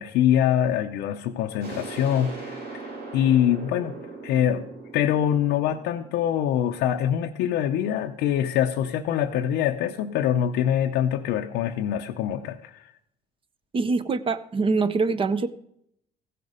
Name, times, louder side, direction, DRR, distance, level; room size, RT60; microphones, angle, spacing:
voice 1, 0.0-3.9 4.2-4.7 4.9-12.9, left 10 dB, 90° left, 3 dB, 0.6 m, -24 dB
sound 1, 1.6-7.1, right 3 dB, 75° right, 3.6 m, -40 dB
voice 2, 13.7-15.5, right 4 dB, 30° right, 14 dB, 0.7 m, -24 dB
15.0 x 6.7 x 5.0 m, 0.73 s
cardioid pair, 110°, 17 cm